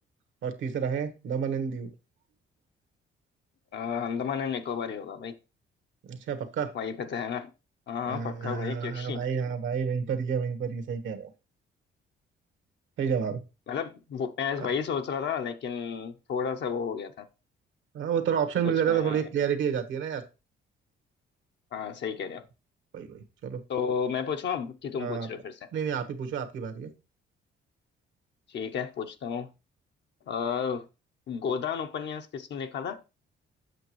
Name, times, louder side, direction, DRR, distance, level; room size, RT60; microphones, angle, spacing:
voice 1, 0.4-1.9 6.1-6.7 8.1-11.3 13.0-13.4 17.9-20.2 22.9-23.6 25.0-25.3 25.7-26.9, right 7 dB, 75° right, 1.3 m, -29 dB
voice 2, 3.7-5.4 6.7-7.5 7.9-9.2 13.7-17.3 18.6-19.2 21.7-22.5 23.7-25.7 28.5-29.5 30.3-30.9 31.3-33.0, left 6 dB, 60° left, 0.8 m, -32 dB
7.9 x 6.0 x 3.1 m
cardioid pair, 90°, 20 cm